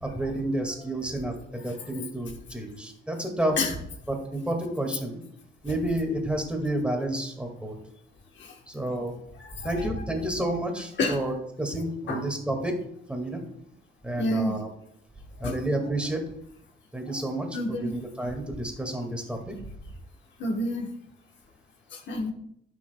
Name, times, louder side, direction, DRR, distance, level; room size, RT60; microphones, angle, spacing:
voice 1, 0.0-3.6 4.1-5.2 5.6-7.7 8.7-9.2 9.6-12.8 13.1-13.4 14.0-14.7 15.4-16.2 16.9-19.5, right 1 dB, 5° right, 3 dB, 2.0 m, -30 dB
voice 2, 9.4-9.8 11.0-11.2 12.1-12.2 14.2-14.6 15.4-15.6 17.5-17.9 20.4-20.9 21.9-22.3, left 1 dB, 65° left, 4 dB, 1.3 m, -28 dB
15.0 x 6.1 x 2.3 m, 0.74 s
cardioid pair, 90°, 20 cm